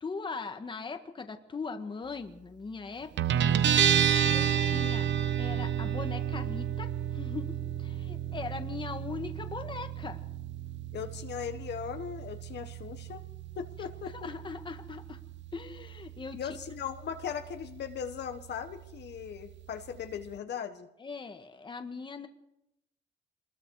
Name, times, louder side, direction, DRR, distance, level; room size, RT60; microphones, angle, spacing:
voice 1, 0.0-3.8 4.3-5.1 5.4-10.2 14.2-15.2 15.5-16.6 21.0-22.3, left 4 dB, 25° left, 7 dB, 1.6 m, -40 dB
Guitar, 3.2-20.4, right 9 dB, 70° right, 0.9 m, -32 dB
voice 2, 10.9-13.2 13.5-14.2 16.3-20.9, left 8 dB, 60° left, 7 dB, 1.5 m, -38 dB
25.5 x 21.0 x 4.8 m, 0.86 s
cardioid pair, 135°, 20 cm